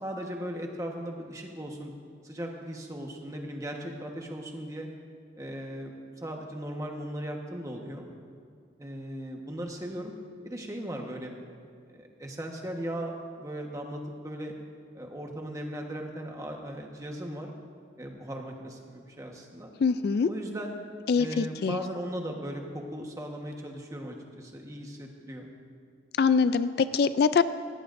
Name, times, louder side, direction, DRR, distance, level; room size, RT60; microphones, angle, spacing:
voice 1, 0.0-1.9 2.2-4.9 5.4-8.0 8.8-10.1 10.4-11.4 11.9-14.5 14.9-17.5 18.0-19.7 20.3-20.7 21.2-25.5, right 1 dB, 15° right, 1 dB, 1.2 m, -38 dB
voice 2, 19.8-20.3 21.1-21.8 26.2-27.4, left 5 dB, 55° left, 13 dB, 0.3 m, -23 dB
18.5 x 17.0 x 2.6 m, 2.2 s
head